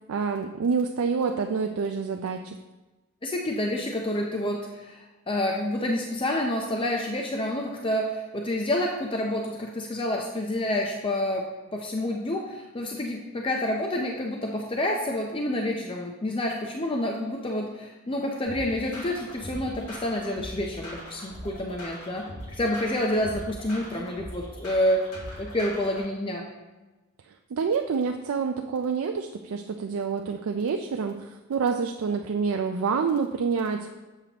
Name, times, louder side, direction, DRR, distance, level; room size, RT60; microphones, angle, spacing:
voice 1, 0.0-2.6 27.5-33.9, right 5 dB, 75° right, 4 dB, 0.4 m, -27 dB
voice 2, 3.2-11.4 11.7-25.1 25.4-26.5, left 1 dB, 25° left, 0 dB, 0.5 m, -28 dB
sound 1, 18.5-26.1, equal, 80° left, 2.2 m, -40 dB
7.4 x 6.6 x 2.9 m, 1.1 s
head